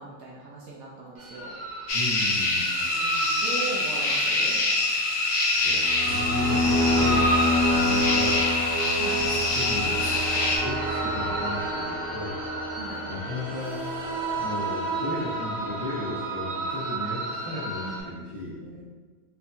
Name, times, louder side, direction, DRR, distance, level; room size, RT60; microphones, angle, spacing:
voice 1, 0.0-1.5 2.7-4.6 8.9-9.3 12.7-13.0 17.8-18.2 18.6-18.8, right 3 dB, 70° right, -4 dB, 0.8 m, -39 dB
sound 1, 1.2-18.0, equal, 50° right, 1.2 m, -29 dB
voice 2, 1.9-2.9 5.6-8.5 9.2-12.4 13.1-14.0 14.4-18.6, left 2 dB, 80° left, -11 dB, 0.3 m, -35 dB
sound 2, 1.9-10.6, left 2 dB, 65° left, 0.8 m, -25 dB
4.5 x 2.7 x 2.2 m, 1.4 s
omnidirectional pair, 2.0 m